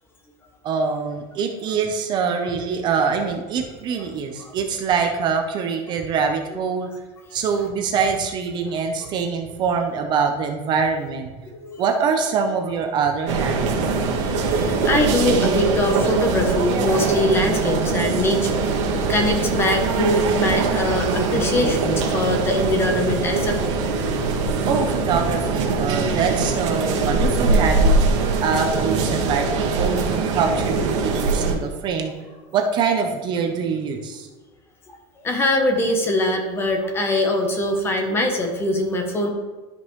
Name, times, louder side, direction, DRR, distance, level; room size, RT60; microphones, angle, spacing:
voice 1, 0.6-6.9 7.3-11.3 11.8-13.9 24.7-28.0 28.4-32.1 32.5-34.3, right 5 dB, 30° right, 4 dB, 0.7 m, -24 dB
sound 1, 13.3-31.6, right 3 dB, 90° right, 1.6 m, -22 dB
voice 2, 14.2-23.8 35.2-39.3, left 1 dB, 15° left, 4 dB, 0.8 m, -23 dB
12.0 x 5.3 x 3.1 m, 1.2 s
cardioid pair, 170°, 15 cm